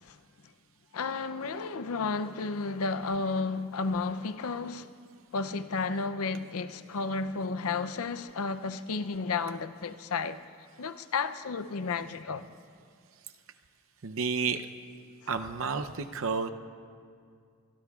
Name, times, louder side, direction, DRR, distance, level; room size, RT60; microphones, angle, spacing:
voice 1, 0.9-4.9 5.3-10.4 10.8-12.5, left 4 dB, 75° left, 0.6 m, -32 dB
voice 2, 14.0-14.7 15.3-16.5, right 5 dB, 65° right, 0.7 m, -31 dB
24.0 x 22.5 x 2.4 m
head